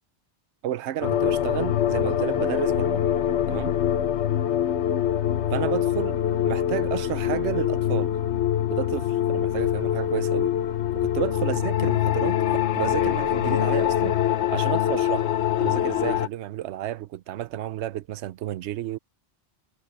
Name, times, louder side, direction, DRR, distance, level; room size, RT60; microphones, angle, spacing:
voice 1, 0.6-3.0 3.5-3.8 5.5-6.2 6.4-8.1 8.7-10.5 11.0-12.4 12.7-14.2 14.5-15.3 15.6-19.0, right 12 dB, 90° right, 0.9 m, -31 dB
sound 1, 1.0-16.3, left 10 dB, 80° left, 1.1 m, -24 dB
omnidirectional pair, 1.1 m